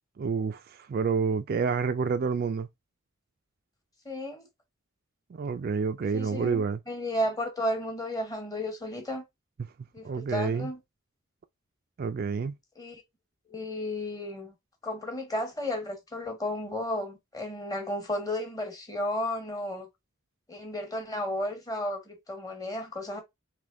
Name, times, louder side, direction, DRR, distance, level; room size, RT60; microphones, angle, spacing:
voice 1, 0.2-2.7 5.3-6.8 10.0-10.7 12.0-12.5, right 5 dB, 45° right, 0.3 m, -28 dB
voice 2, 4.0-4.5 6.1-9.2 9.9-10.8 12.8-13.0 13.5-14.5 14.8-19.9 20.5-23.2, left 1 dB, 20° left, 1.2 m, -33 dB
3.4 x 3.0 x 3.7 m
head